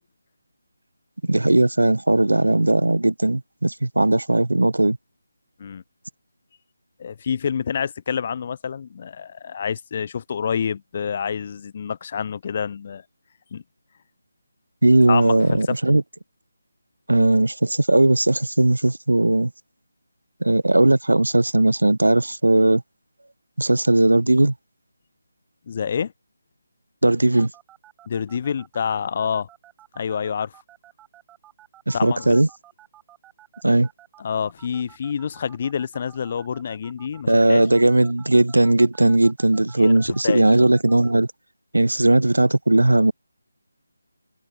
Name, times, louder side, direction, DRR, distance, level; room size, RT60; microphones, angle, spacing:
voice 1, 1.2-5.0 14.8-16.0 17.1-19.5 20.4-22.8 23.6-24.5 27.0-27.5 31.9-32.5 33.6-33.9 37.3-41.3 41.7-43.1, right 2 dB, 85° right, 0.7 m, -18 dB
voice 2, 7.0-13.0 13.5-13.6 15.1-15.6 25.7-26.1 28.1-29.5 30.0-30.5 31.9-32.4 34.2-37.6 39.8-40.4, left 7 dB, 35° left, 0.8 m, -27 dB
sound 1, 27.4-41.1, right 14 dB, 10° right, 6.1 m, -50 dB
figure-of-eight pair, 160°, 0 cm